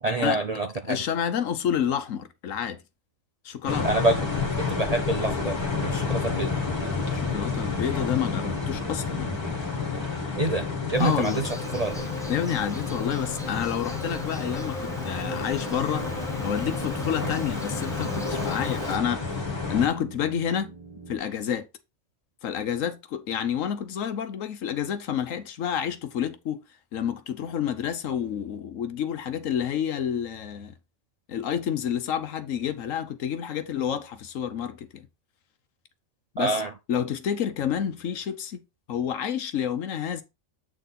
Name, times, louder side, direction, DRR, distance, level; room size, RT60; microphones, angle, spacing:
voice 1, 0.0-1.0 3.8-4.2 4.6-6.5 10.4-10.7 10.9-12.1 17.2-17.3 36.4-36.7, right 2 dB, 45° right, 0.5 m, -27 dB
voice 2, 0.9-2.8 3.4-3.9 7.1-9.4 11.0-11.4 12.3-16.1 16.4-19.3 19.7-20.7 21.1-21.7 22.4-26.6 26.9-30.7 31.3-35.1 36.3-36.6 36.9-38.6 38.9-40.2, left 9 dB, 75° left, 1.2 m, -29 dB
sound 1, 3.7-19.9, left 4 dB, 20° left, 1.6 m, -30 dB
Insect, 11.0-19.0, equal, 5° left, 0.8 m, -39 dB
sound 2, 15.3-21.2, right 1 dB, 20° right, 1.4 m, -44 dB
8.2 x 4.0 x 4.0 m
omnidirectional pair, 1.4 m